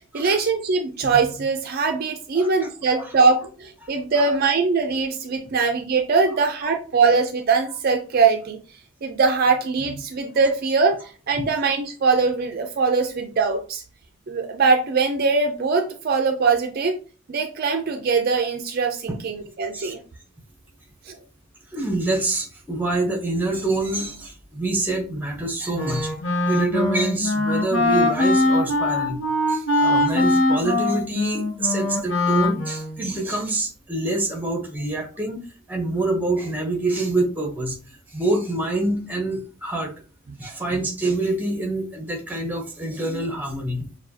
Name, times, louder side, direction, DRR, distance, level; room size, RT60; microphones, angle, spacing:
voice 1, 0.1-8.6 9.0-13.8 14.3-17.0 17.3-20.0 21.1-21.2, right 4 dB, 45° right, 5 dB, 0.4 m, -21 dB
voice 2, 2.4-2.7 3.0-3.1 3.8-3.9 19.7-19.9 21.7-26.1 26.4-35.4 35.7-37.8 38.1-39.9 40.4-43.9, right 2 dB, 10° right, 3 dB, 0.8 m, -26 dB
Wind instrument woodwind instrument, 25.7-33.1, left 2 dB, 60° left, 1.0 m, -22 dB
6.8 x 2.3 x 2.7 m, 0.38 s
head